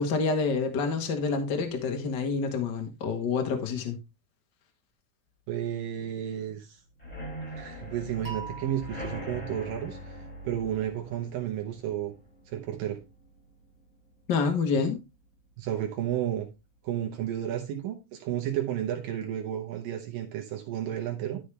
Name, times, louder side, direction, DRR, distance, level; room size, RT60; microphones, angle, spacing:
voice 1, 0.0-4.0 14.3-15.0, left 4 dB, 70° left, 1.0 m, -27 dB
voice 2, 5.5-6.8 7.6-12.1 12.5-13.0 15.6-16.5 16.8-21.4, right 11 dB, 80° right, 2.8 m, -32 dB
sound 1, 7.0-14.6 15.0-15.4 15.6-15.7 16.1-16.2, left 1 dB, 10° left, 3.6 m, -43 dB
sound 2, 8.2-11.2, right 5 dB, 10° right, 1.6 m, -45 dB
12.0 x 6.3 x 3.3 m
omnidirectional pair, 4.0 m